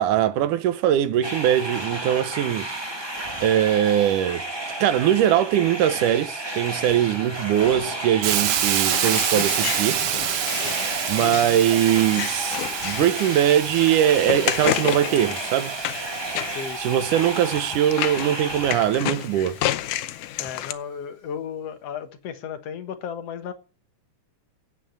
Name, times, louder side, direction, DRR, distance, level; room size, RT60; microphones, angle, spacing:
voice 1, 0.0-2.7 3.4-4.4 4.8-10.0 11.1-15.8 16.8-19.6, right 11 dB, 80° right, 2.5 m, -21 dB
sound 1, 1.2-18.7, right 1 dB, 15° right, 1.1 m, -32 dB
Hiss, 8.2-18.1, right 11 dB, 65° right, 1.6 m, -28 dB
sound 2, 8.9-20.7, left 13 dB, 90° left, 2.3 m, -31 dB
voice 2, 16.5-17.1 20.4-23.5, left 7 dB, 60° left, 2.2 m, -34 dB
10.0 x 8.9 x 9.2 m
omnidirectional pair, 3.6 m